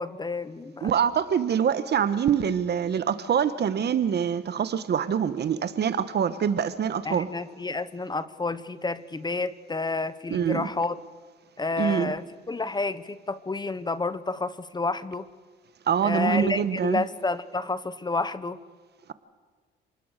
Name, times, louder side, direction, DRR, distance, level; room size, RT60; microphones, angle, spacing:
voice 1, 0.0-0.9 7.0-11.0 11.6-15.3 16.0-18.6, left 3 dB, 20° left, 14 dB, 1.1 m, -30 dB
voice 2, 0.8-7.3 10.3-10.7 11.8-12.1 15.9-17.0, right 8 dB, 55° right, 13 dB, 1.4 m, -25 dB
28.5 x 20.0 x 6.7 m, 1.5 s
cardioid pair, 90°, 20 cm